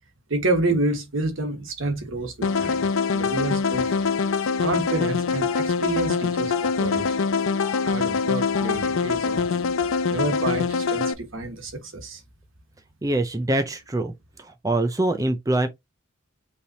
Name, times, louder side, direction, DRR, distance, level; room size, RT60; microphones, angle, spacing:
voice 1, 0.3-2.9 3.1-3.9 4.6-7.2 7.9-9.5 10.1-12.2, right 2 dB, 70° right, 1.5 m, -28 dB
sound 1, 2.4-11.1, left 5 dB, 80° left, 0.6 m, -24 dB
Telephone, 2.5-2.7 3.0-3.1 4.0-4.2 4.4-4.5 5.3-5.6 6.4-6.7 7.5-7.8 8.4-8.7 9.6-9.7 9.9-10.6, left 14 dB, 5° left, 2.2 m, -40 dB
voice 2, 13.0-14.1 14.4-15.7, right 2 dB, 15° right, 0.5 m, -24 dB
5.5 x 3.3 x 2.7 m
head